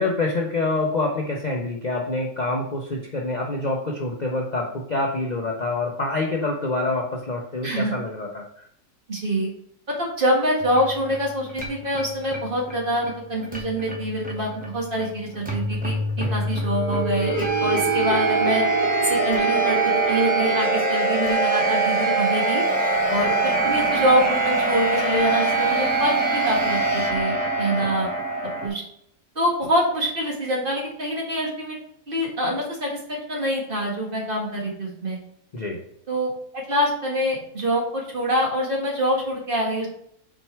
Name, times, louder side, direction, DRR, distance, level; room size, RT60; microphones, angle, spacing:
voice 1, 0.0-8.4 16.2-16.5 27.8-28.2 35.5-35.8, left 2 dB, 60° left, 0 dB, 0.4 m, -26 dB
voice 2, 7.6-7.9 9.1-9.5 10.0-18.6 19.0-22.6 23.1-28.1 28.6-28.8 29.4-31.8 32.1-33.0 33.3-35.2 36.1-39.9, equal, 30° right, -2 dB, 1.7 m, -25 dB
sound 1, 10.6-28.7, right 3 dB, 5° right, 1.1 m, -24 dB
6.4 x 4.5 x 4.5 m, 0.70 s
omnidirectional pair, 1.9 m